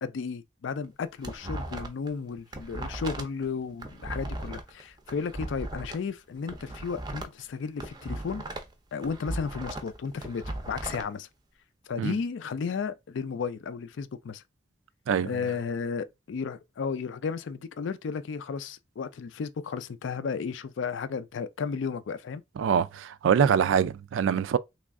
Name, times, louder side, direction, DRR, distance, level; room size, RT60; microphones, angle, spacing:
voice 1, 0.0-8.4 8.9-11.3 11.9-14.4 15.3-22.4, left 5 dB, 80° left, 0.4 m, -33 dB
sound 1, 0.8-2.1 2.4-6.0 6.4-8.7 9.0-11.0, right 1 dB, 20° right, 0.5 m, -37 dB
voice 2, 22.6-24.6, right 7 dB, 85° right, 0.3 m, -24 dB
3.1 x 2.4 x 3.5 m
head